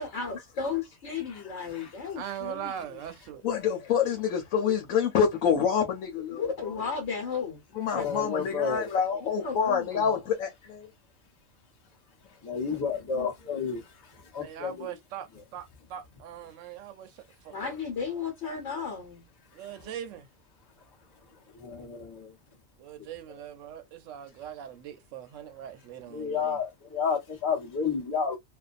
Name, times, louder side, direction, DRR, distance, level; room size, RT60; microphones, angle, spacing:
voice 1, 0.0-3.0 6.3-7.6 7.9-8.1 9.2-10.2 12.6-12.8 13.2-13.3 13.6-13.7 17.5-19.2 19.8-19.9, left 5 dB, 60° left, 1.1 m, -34 dB
voice 2, 1.3-2.0 7.9-8.9 12.4-14.9 19.6-19.8 21.5-22.3 26.1-28.4, left 5 dB, 20° left, 0.7 m, -32 dB
voice 3, 2.2-3.4 14.4-15.3 15.5-17.7 19.5-20.3 22.8-26.6, right 10 dB, 70° right, 0.9 m, -41 dB
voice 4, 3.4-6.5 7.7-10.9 13.2-13.6, left 7 dB, 80° left, 1.1 m, -27 dB
2.6 x 2.2 x 2.4 m
omnidirectional pair, 1.4 m